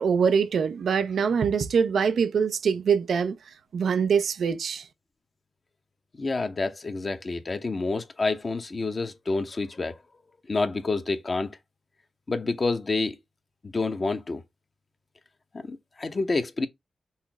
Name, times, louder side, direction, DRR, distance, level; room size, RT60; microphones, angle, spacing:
voice 1, 0.0-3.4 3.7-4.9, right 6 dB, 80° right, 0.4 m, -24 dB
voice 2, 6.2-10.0 10.5-11.6 12.3-13.2 13.6-14.4 15.5-16.7, left 3 dB, 50° left, 0.8 m, -28 dB
5.6 x 2.0 x 4.6 m
supercardioid pair, 40°, 0 cm